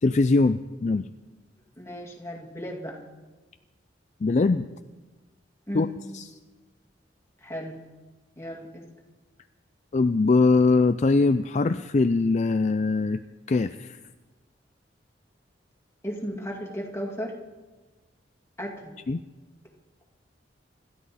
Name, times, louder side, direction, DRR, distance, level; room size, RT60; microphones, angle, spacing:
voice 1, 0.0-1.1 4.2-4.7 5.7-5.9 6.1-6.3 9.9-13.2 13.5-14.0 19.1-19.2, left 3 dB, 40° left, 11 dB, 0.4 m, -22 dB
voice 2, 1.8-3.0 5.7-6.0 7.4-7.8 8.4-8.9 16.0-17.3 18.6-19.0, equal, 15° left, 0 dB, 2.3 m, -35 dB
26.5 x 13.0 x 4.2 m, 1.2 s
head